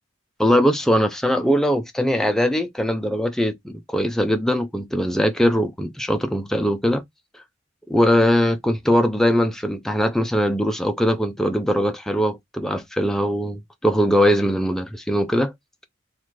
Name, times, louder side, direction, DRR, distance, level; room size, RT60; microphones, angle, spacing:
voice 1, 0.4-7.0 7.9-15.5, equal, 5° left, 0.5 m, -21 dB
3.0 x 2.4 x 4.2 m
head